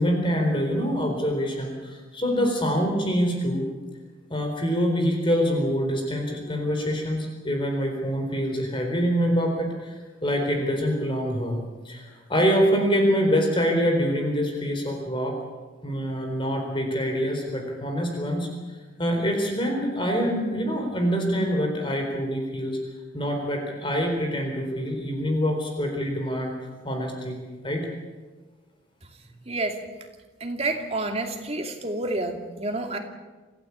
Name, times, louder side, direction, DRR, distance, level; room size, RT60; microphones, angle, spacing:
voice 1, 0.0-3.7 4.3-9.9 10.2-11.6 11.8-15.4 15.8-18.5 19.0-22.8 23.1-26.5 26.8-27.4 27.6-27.9, equal, 25° left, 2 dB, 4.1 m, -25 dB
voice 2, 29.5-29.8 30.4-33.0, right 2 dB, 35° right, 3 dB, 2.6 m, -29 dB
27.5 x 15.5 x 8.4 m, 1.3 s
head